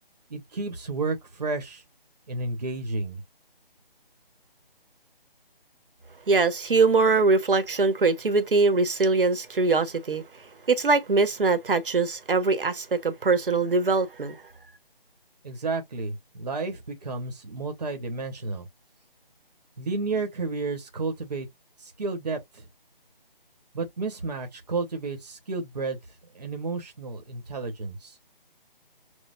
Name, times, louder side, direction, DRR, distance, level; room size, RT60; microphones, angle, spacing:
voice 1, 0.3-1.8 2.3-3.2 15.4-18.7 19.8-21.5 21.8-22.6 23.7-26.0 26.3-28.2, right 3 dB, 45° right, 1.2 m, -31 dB
voice 2, 6.3-10.2 10.7-14.4, right 3 dB, 65° right, 1.3 m, -22 dB
6.4 x 2.3 x 2.4 m
figure-of-eight pair, 170°, 29 cm